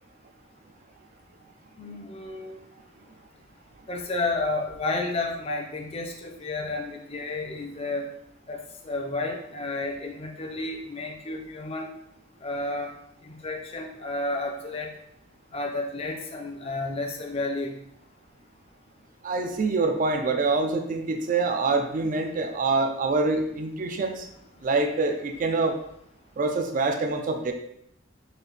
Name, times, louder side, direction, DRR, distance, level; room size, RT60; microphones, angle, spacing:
voice 1, 1.8-2.6 3.9-8.1 8.5-11.9 12.4-12.9 13.2-14.9 15.5-17.8, left 2 dB, 30° left, 1 dB, 0.5 m, -31 dB
voice 2, 19.2-24.3 24.6-25.8 26.4-27.5, right 3 dB, 45° right, 5 dB, 0.4 m, -25 dB
3.9 x 2.6 x 3.3 m, 0.74 s
head